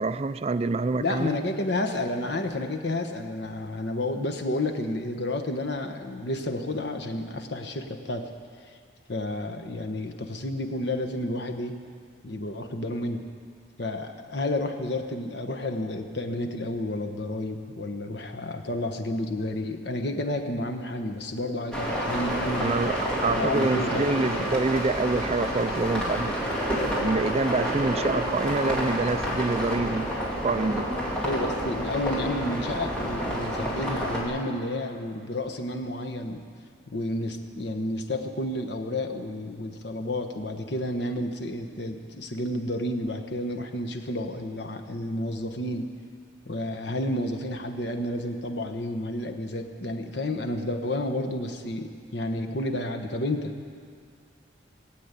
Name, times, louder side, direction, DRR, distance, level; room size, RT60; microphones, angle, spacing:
voice 1, 0.0-1.3 22.6-26.3 27.0-30.1 30.4-30.9, right 3 dB, 35° right, 12 dB, 0.4 m, -26 dB
voice 2, 0.9-8.3 8.7-8.8 9.1-11.8 12.2-13.2 13.8-22.7 23.3-24.3 31.2-36.4 36.9-45.9 46.4-53.5, left 1 dB, 60° left, 6 dB, 1.2 m, -31 dB
sound 1, 21.7-34.2, equal, 5° left, 2.7 m, -29 dB
19.5 x 8.6 x 8.3 m, 2.3 s
head